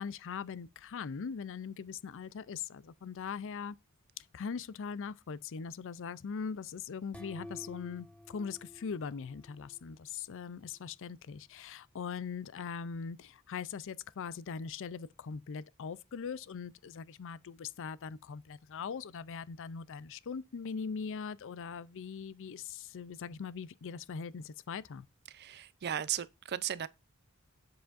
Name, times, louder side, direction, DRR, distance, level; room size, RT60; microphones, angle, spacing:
voice 1, 0.0-3.8 4.2-25.0, left 6 dB, 60° left, 0.5 m, -41 dB
sound 1, 7.1-9.9, left 1 dB, 5° left, 1.0 m, -51 dB
voice 2, 25.3-26.9, right 10 dB, 50° right, 0.5 m, -36 dB
7.6 x 7.1 x 2.5 m
head